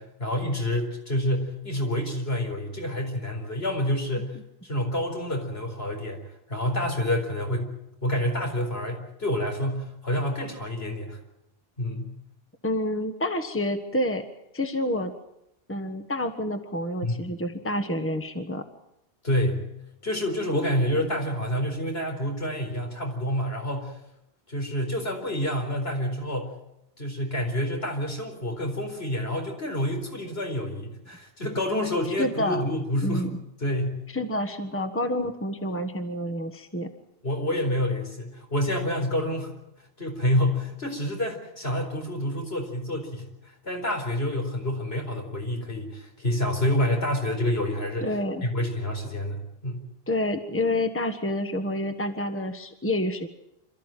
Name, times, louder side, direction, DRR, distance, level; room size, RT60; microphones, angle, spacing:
voice 1, 0.0-4.4 4.6-6.2 6.5-7.7 8.0-11.2 11.8-12.1 17.0-17.3 19.2-19.7 20.0-23.9 24.5-26.6 27.0-33.3 33.6-34.0 37.2-39.5 40.0-43.3 43.6-48.1 48.4-49.9, left 1 dB, 75° left, 2 dB, 4.7 m, -28 dB
voice 2, 12.6-14.2 14.5-15.1 15.7-18.6 32.2-32.7 33.0-33.3 34.1-36.9 48.0-48.4 50.1-53.3, left 1 dB, 10° left, 7 dB, 1.4 m, -28 dB
27.5 x 13.5 x 9.1 m, 0.84 s
omnidirectional pair, 1.0 m